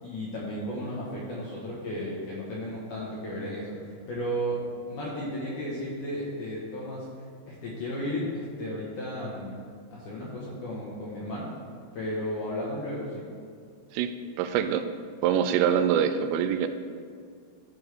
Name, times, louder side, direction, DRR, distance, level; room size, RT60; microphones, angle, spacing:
voice 1, 0.0-4.6 4.9-7.1 7.5-9.6 9.9-11.6 11.9-13.2, equal, 65° left, -6 dB, 2.0 m, -34 dB
voice 2, 13.9-14.9 15.2-16.7, right 8 dB, 90° right, 8 dB, 2.9 m, -25 dB
14.5 x 5.4 x 3.4 m, 2.2 s
omnidirectional pair, 5.1 m